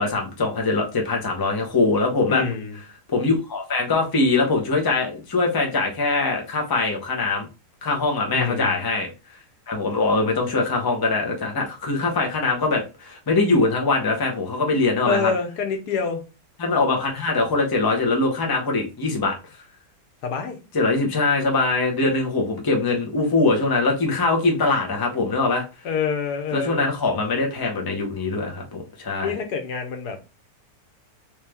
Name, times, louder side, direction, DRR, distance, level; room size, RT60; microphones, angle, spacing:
voice 1, 0.0-2.4 3.1-7.5 7.8-9.1 9.7-15.3 16.6-19.3 20.7-25.6 26.5-29.3, left 3 dB, 20° left, 0.6 m, -22 dB
voice 2, 2.3-2.8 8.3-8.8 15.1-16.2 20.2-20.6 25.8-26.9 29.2-30.2, left 5 dB, 80° left, 1.4 m, -26 dB
3.2 x 3.2 x 3.4 m
omnidirectional pair, 1.7 m